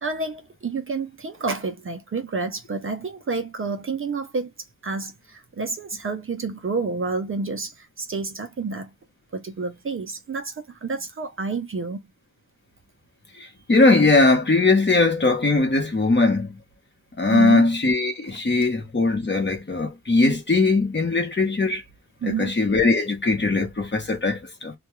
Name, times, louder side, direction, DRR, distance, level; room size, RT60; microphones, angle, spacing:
voice 1, 0.0-4.5 4.8-8.9 9.3-12.0 17.3-17.7 22.2-22.6, right 4 dB, 40° right, 0.5 m, -29 dB
voice 2, 13.4-16.6 17.2-21.8 22.2-24.7, left 3 dB, 30° left, 0.8 m, -20 dB
2.3 x 2.3 x 2.9 m
wide cardioid pair, 115°, 34 cm